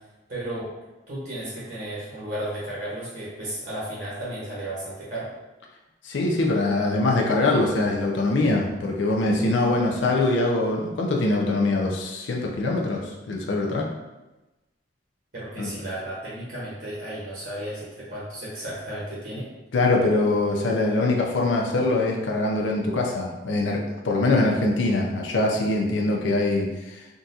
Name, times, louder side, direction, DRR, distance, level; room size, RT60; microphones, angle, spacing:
voice 1, 0.3-0.7 1.1-5.3 15.3-19.5, right 1 dB, 60° right, -8 dB, 1.1 m, -34 dB
voice 2, 6.0-13.9 15.6-15.7 19.7-27.1, left 2 dB, 85° left, 0 dB, 0.5 m, -23 dB
3.8 x 2.3 x 2.6 m, 1.1 s
head